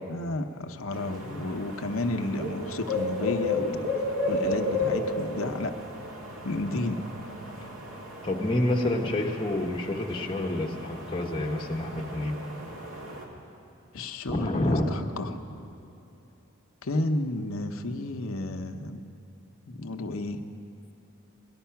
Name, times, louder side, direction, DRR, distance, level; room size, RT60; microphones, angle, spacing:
voice 1, 0.1-5.7 6.4-7.0 13.9-15.4 16.8-19.0 19.7-20.4, left 2 dB, 75° left, 6 dB, 0.8 m, -32 dB
sound 1, 0.9-13.3, left 2 dB, 70° right, 2.0 m, -34 dB
voice 2, 8.2-12.3 14.3-14.8, left 1 dB, 20° left, -1 dB, 1.1 m, -28 dB
19.0 x 12.5 x 5.8 m, 2.7 s
head